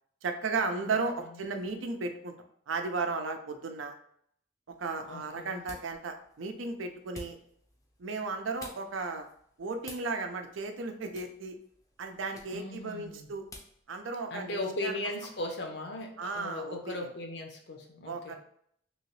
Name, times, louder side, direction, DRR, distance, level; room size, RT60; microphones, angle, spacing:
voice 1, 0.2-2.3 2.7-3.9 4.8-7.4 8.0-9.3 9.6-11.6 12.0-13.4 13.9-15.0 16.2-17.1 18.1-18.3, right 3 dB, 90° right, 6 dB, 0.5 m, -35 dB
sound 1, 4.7-13.8, left 1 dB, 15° left, 0.4 m, -53 dB
voice 2, 5.1-5.6 12.5-13.3 14.3-18.3, left 2 dB, 60° left, 2 dB, 0.6 m, -38 dB
3.0 x 2.8 x 3.0 m, 0.66 s
head